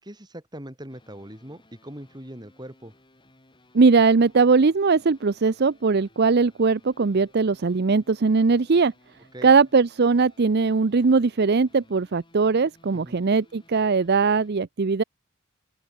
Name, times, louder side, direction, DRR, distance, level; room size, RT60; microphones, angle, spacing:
voice 1, 0.0-2.9 9.3-9.5 12.9-13.2, right 1 dB, 20° right, 5.9 m, -41 dB
sound 1, 0.9-14.5, left 1 dB, 25° left, 6.8 m, -59 dB
voice 2, 3.7-8.9 9.4-15.0, right 4 dB, 50° right, 0.6 m, -20 dB
open air
head